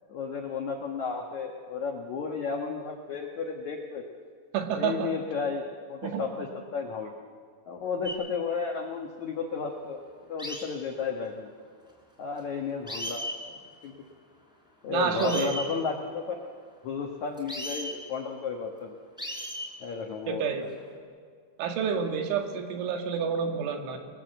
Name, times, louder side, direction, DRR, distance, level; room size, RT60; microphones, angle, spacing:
voice 1, 0.1-4.0 4.7-7.1 7.7-10.0 10.3-11.5 12.2-13.3 13.8-13.9 14.8-16.4 16.8-19.0 19.8-20.4, left 5 dB, 70° left, 2 dB, 1.7 m, -33 dB
voice 2, 4.5-5.1 6.0-6.2 14.9-15.6 20.3-20.7 21.6-24.0, right 6 dB, 80° right, 4 dB, 4.4 m, -29 dB
sound 1, 8.0-8.2 10.4-10.6 12.4-12.5 12.9-13.4 15.2-15.7 17.4-17.9 19.2-19.7 20.6-20.9, equal, ahead, 3.9 m, -35 dB
30.0 x 19.5 x 7.9 m, 2.1 s
omnidirectional pair, 5.5 m